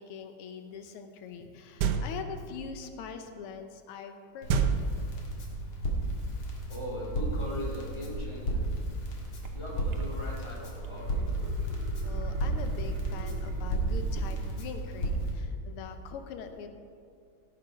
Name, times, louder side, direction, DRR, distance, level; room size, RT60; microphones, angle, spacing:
voice 1, 0.0-4.9 12.0-16.7, left 6 dB, 90° left, 7 dB, 1.7 m, -43 dB
sound 1, 1.8-2.4 4.5-5.5, right 7 dB, 70° right, 1.0 m, -29 dB
Crackle, 4.4-15.3, right 1 dB, 70° left, 2.6 m, -33 dB
voice 2, 6.7-8.7 9.5-11.3, equal, 15° left, -4 dB, 2.3 m, -39 dB
sound 2, 9.4-9.5 9.9-10.5 10.8-14.7, right 3 dB, 85° right, 2.0 m, -35 dB
17.0 x 6.3 x 5.0 m, 2.2 s
omnidirectional pair, 2.4 m